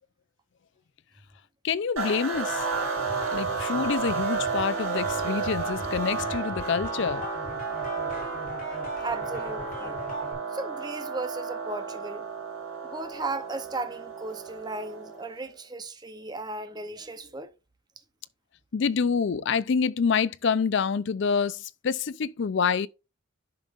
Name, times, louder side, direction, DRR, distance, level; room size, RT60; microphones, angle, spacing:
voice 1, 1.6-2.7 3.2-7.3 18.7-22.9, left 6 dB, 55° left, 0.4 m, -27 dB
sound 1, 2.0-15.3, right 4 dB, 70° right, 2.6 m, -32 dB
sound 2, 2.3-10.3, right 1 dB, 40° left, 3.6 m, -39 dB
voice 2, 9.0-10.0 10.5-12.2 12.8-17.5, right 2 dB, 20° right, 0.7 m, -36 dB
11.0 x 5.4 x 2.5 m
head